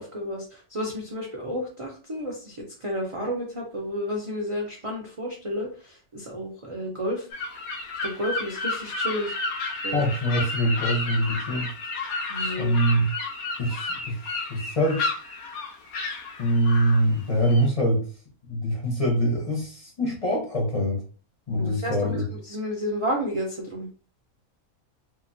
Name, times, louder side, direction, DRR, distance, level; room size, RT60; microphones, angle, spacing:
voice 1, 0.0-7.3 8.0-9.4 9.8-10.0 12.3-12.7 21.6-23.9, equal, 55° right, -3 dB, 0.3 m, -31 dB
sound 1, 7.3-17.7, left 3 dB, 85° left, 1.1 m, -32 dB
voice 2, 9.9-11.7 12.6-13.1 13.6-15.1 16.4-18.1 18.4-21.0 21.5-22.3, equal, 35° left, -2 dB, 0.6 m, -24 dB
2.8 x 2.5 x 2.6 m, 0.38 s
omnidirectional pair, 1.5 m